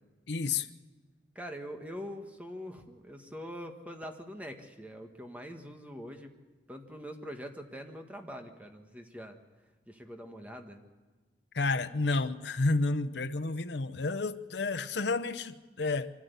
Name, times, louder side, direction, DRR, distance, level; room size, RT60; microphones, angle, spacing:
voice 1, 0.3-0.7 11.5-16.1, left 3 dB, 70° left, 0.8 m, -30 dB
voice 2, 1.3-6.3 6.7-9.4 9.9-10.8, equal, 10° right, 1.5 m, -43 dB
24.5 x 14.0 x 8.2 m
head